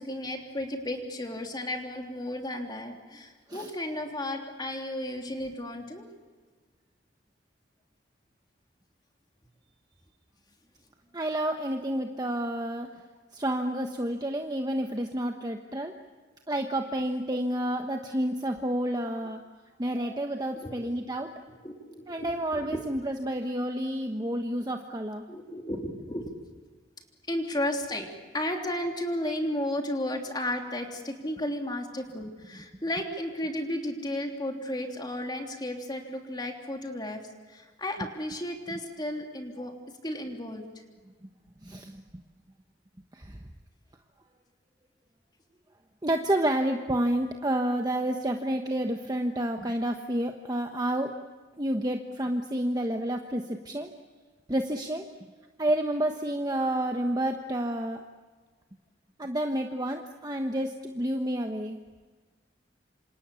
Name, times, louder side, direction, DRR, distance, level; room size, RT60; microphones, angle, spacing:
voice 1, 0.0-6.1 19.9-20.2 20.6-20.9 21.6-22.8 25.3-26.3 27.3-28.1 28.3-37.2 37.5-39.7 40.0-40.6, left 1 dB, 25° left, 2 dB, 3.2 m, -33 dB
voice 2, 11.1-12.9 13.3-15.9 16.5-19.4 19.8-21.3 22.1-25.2 41.6-42.0 43.1-43.4 46.0-51.1 51.6-53.9 54.5-55.0 55.6-58.0 59.2-61.8, right 1 dB, 20° right, 4 dB, 1.2 m, -29 dB
27.5 x 27.0 x 7.1 m, 1.4 s
head